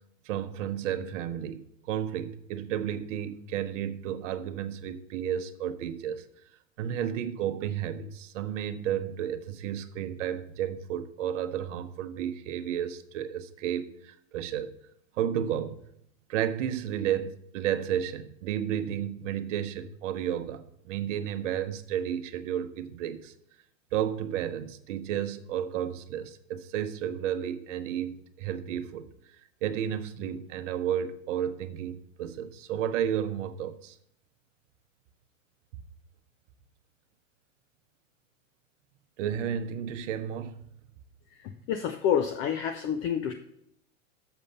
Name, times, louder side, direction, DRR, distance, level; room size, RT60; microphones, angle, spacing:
voice 1, 0.2-6.2 6.8-14.7 15.2-15.8 16.3-23.3 23.9-29.1 29.6-34.0 39.2-40.6, right 9 dB, 65° right, 0.9 m, -32 dB
voice 2, 41.3-43.3, left 8 dB, 35° left, 0.5 m, -28 dB
7.2 x 6.5 x 5.5 m
hypercardioid pair, 125°, 39 cm